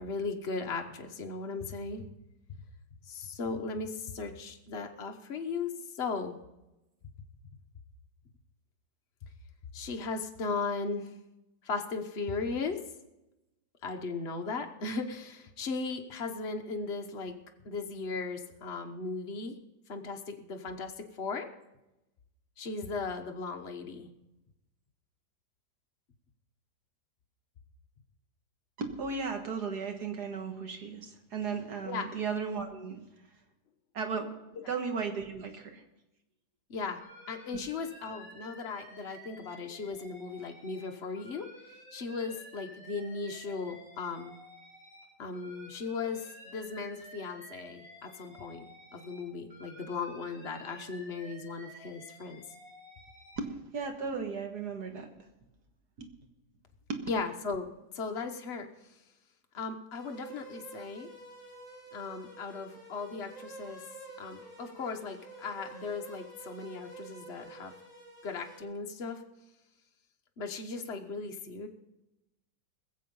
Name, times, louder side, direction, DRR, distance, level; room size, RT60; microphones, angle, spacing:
voice 1, 0.0-2.0 3.1-6.4 9.7-11.1 11.6-12.8 13.8-17.3 17.6-19.5 19.9-21.5 22.6-24.1 31.8-32.1 36.7-37.0 37.3-44.3 45.2-52.4 57.1-57.7 57.9-58.7 59.5-61.1 61.9-63.8 64.2-67.7 68.2-69.2 70.4-71.7, left 4 dB, 40° left, 3 dB, 1.3 m, -37 dB
voice 2, 28.8-33.0 33.9-34.3 34.7-35.8 53.4-55.1 56.0-56.1 56.9-57.0, right 5 dB, 60° right, 5 dB, 2.0 m, -35 dB
Alarm, 37.0-40.9 41.2-45.0 45.3-49.2 49.5-53.4, equal, 40° right, 4.5 m, -52 dB
sound 1, 60.0-68.6, right 2 dB, 25° right, 6.2 m, -49 dB
21.0 x 7.5 x 5.4 m, 0.95 s
omnidirectional pair, 2.0 m